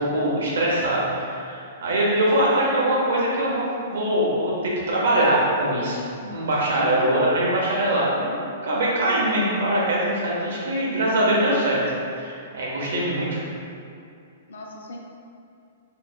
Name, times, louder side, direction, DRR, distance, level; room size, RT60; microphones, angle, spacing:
voice 1, 0.0-6.0 6.3-8.4 8.6-11.8 12.1-13.4, right 1 dB, 75° right, -5 dB, 1.1 m, -22 dB
voice 2, 2.4-2.8 6.7-7.3 14.5-15.0, left 2 dB, 85° left, -1 dB, 0.6 m, -37 dB
4.7 x 3.1 x 2.2 m, 2.5 s
hypercardioid pair, 175°, 0 cm